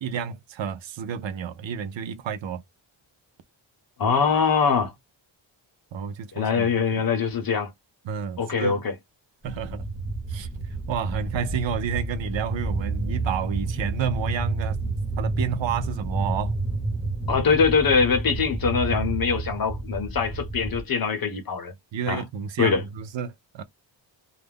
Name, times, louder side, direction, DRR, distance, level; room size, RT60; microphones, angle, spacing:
voice 1, 0.0-2.6 5.9-7.0 8.1-8.8 9.4-9.9 10.3-10.5 10.9-14.8 15.2-16.5 21.9-23.6, right 7 dB, 70° right, 0.6 m, -30 dB
voice 2, 4.0-4.9 6.3-7.7 8.4-8.9 17.3-21.7 22.1-22.2 22.6-22.8, left 5 dB, 50° left, 0.9 m, -23 dB
sound 1, 9.4-20.8, right 3 dB, ahead, 1.0 m, -30 dB
2.4 x 2.0 x 3.4 m
wide cardioid pair, 120°, 47 cm